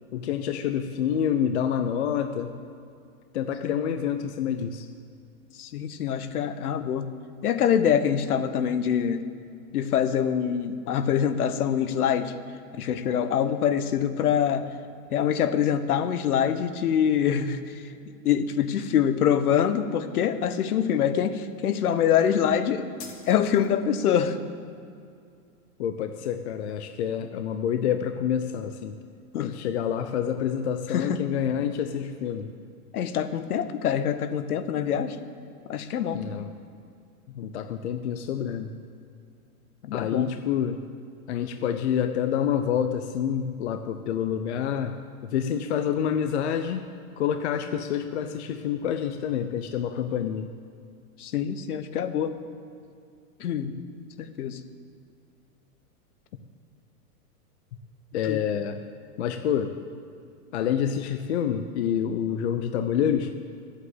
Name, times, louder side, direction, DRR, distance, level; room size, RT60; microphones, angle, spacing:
voice 1, 0.1-2.5 3.3-4.9 25.8-28.9 29.4-32.5 36.1-36.5 37.3-38.7 39.9-40.8 41.3-45.0 45.2-46.9 47.2-50.5 58.1-58.8 59.2-59.7 60.5-63.3, left 8 dB, 45° left, 7 dB, 0.7 m, -27 dB
voice 2, 5.6-7.1 7.4-9.2 9.7-12.3 12.7-14.7 15.1-17.6 18.2-22.8 23.3-24.4 29.3-29.5 30.9-31.2 32.9-35.2 35.7-36.2 39.8-40.3 51.2-52.3 53.4-53.7 54.2-54.6 58.2-58.4, left 8 dB, 70° left, 10 dB, 1.2 m, -25 dB
sound 1, 23.0-24.0, left 5 dB, 20° left, 1.2 m, -46 dB
12.0 x 8.2 x 8.0 m, 2.4 s
supercardioid pair, 170°, 45 cm